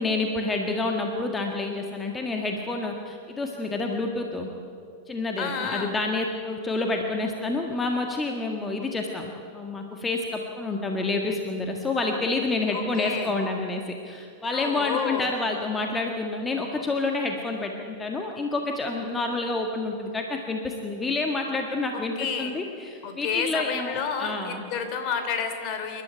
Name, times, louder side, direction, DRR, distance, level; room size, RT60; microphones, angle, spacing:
voice 1, 0.0-4.5 5.1-24.6, left 3 dB, 15° left, 2 dB, 1.7 m, -28 dB
voice 2, 5.4-5.9 12.7-13.3 14.5-15.3 22.2-22.5 23.0-26.0, left 6 dB, 40° left, 6 dB, 3.1 m, -30 dB
28.0 x 12.5 x 9.0 m, 2.5 s
figure-of-eight pair, 90°, 0 cm